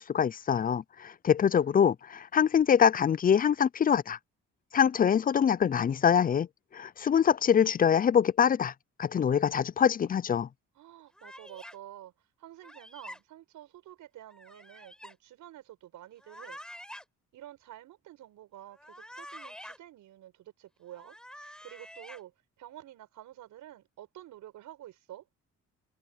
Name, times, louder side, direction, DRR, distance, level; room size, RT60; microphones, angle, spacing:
voice 1, 0.0-4.2 4.7-6.5 6.7-8.7 9.0-10.5, left 8 dB, 30° left, 0.4 m, -24 dB
voice 2, 10.7-12.1 12.4-16.6 17.3-25.3, right 13 dB, 85° right, 6.3 m, -49 dB
sound 1, 11.2-11.8 12.6-13.2 14.3-15.1 16.2-17.0 18.7-19.8 20.9-22.2, equal, 5° left, 4.8 m, -47 dB
cardioid pair, 90°, 30 cm